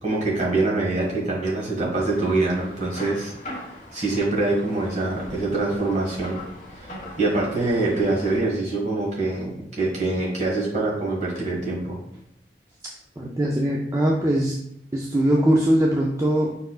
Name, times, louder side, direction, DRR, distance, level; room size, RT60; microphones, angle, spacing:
voice 1, 0.0-3.3 3.9-6.4 6.8-12.0, right 2 dB, 40° right, -4 dB, 1.6 m, -24 dB
sound 1, 1.9-8.4, left 1 dB, 40° left, 1.4 m, -41 dB
voice 2, 13.2-14.5 14.9-16.5, right 1 dB, 15° right, -2 dB, 0.4 m, -21 dB
4.9 x 4.4 x 2.4 m, 0.74 s
head